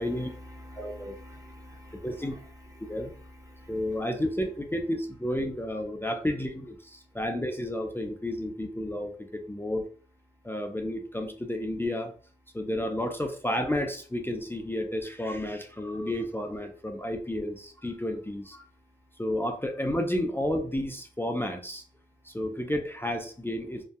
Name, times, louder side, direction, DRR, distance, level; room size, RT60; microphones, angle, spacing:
voice 1, 0.0-4.2, left 1 dB, 15° right, 0 dB, 0.8 m, -48 dB
voice 2, 0.8-1.2 1.9-2.3 2.9-3.1 3.7-9.8 10.4-12.1 12.5-18.6 19.2-21.8 22.3-23.8, left 1 dB, 10° left, 4 dB, 0.4 m, -31 dB
2.6 x 2.2 x 2.2 m, 0.41 s
cardioid pair, 55°, 19 cm